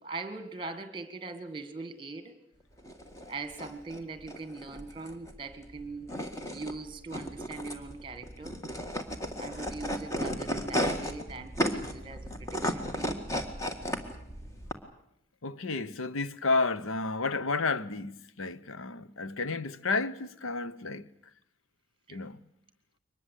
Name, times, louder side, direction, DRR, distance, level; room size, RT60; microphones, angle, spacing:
voice 1, 0.0-2.3 3.3-6.1 6.5-8.6 9.4-13.2 22.1-22.2, right 3 dB, 25° right, 2.1 m, -41 dB
sound 1, 2.8-14.7, equal, 15° left, 1.9 m, -35 dB
voice 2, 15.4-21.1 22.1-22.4, left 3 dB, 90° left, 1.0 m, -31 dB
23.5 x 20.5 x 8.4 m
head